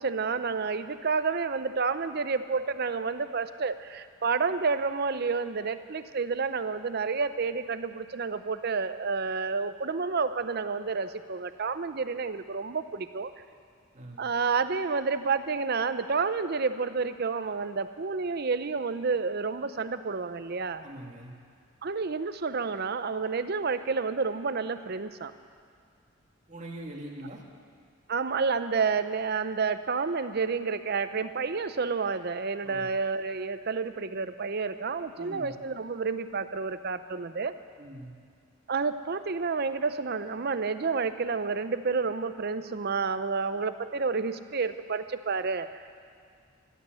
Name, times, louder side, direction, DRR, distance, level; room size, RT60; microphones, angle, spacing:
voice 1, 0.0-13.3 14.2-20.8 21.8-25.3 28.1-37.5 38.7-45.9, right 4 dB, 50° right, 11 dB, 0.6 m, -30 dB
voice 2, 20.8-21.3 26.5-27.4 32.6-32.9 35.2-35.5 37.8-38.1, right 1 dB, 35° right, -1 dB, 2.1 m, -42 dB
15.5 x 12.0 x 7.7 m, 2.2 s
head